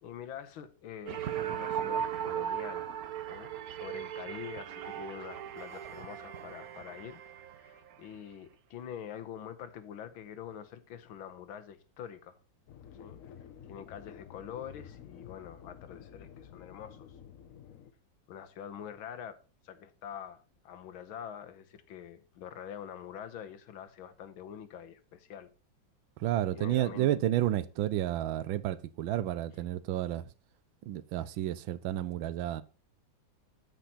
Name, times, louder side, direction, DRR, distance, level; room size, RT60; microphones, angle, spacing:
voice 1, 0.0-2.9 3.3-7.2 7.6-12.4 13.0-13.2 13.7-17.1 18.3-19.4 19.6-25.5 26.6-27.3, left 9 dB, 90° left, 1.8 m, -45 dB
sound 1, 1.1-8.0, right 10 dB, 55° right, 1.1 m, -37 dB
sound 2, 12.7-17.9, left 8 dB, 60° left, 0.9 m, -51 dB
voice 2, 26.2-30.2 30.9-32.6, right 13 dB, 80° right, 1.5 m, -31 dB
8.9 x 7.8 x 4.2 m
omnidirectional pair, 2.2 m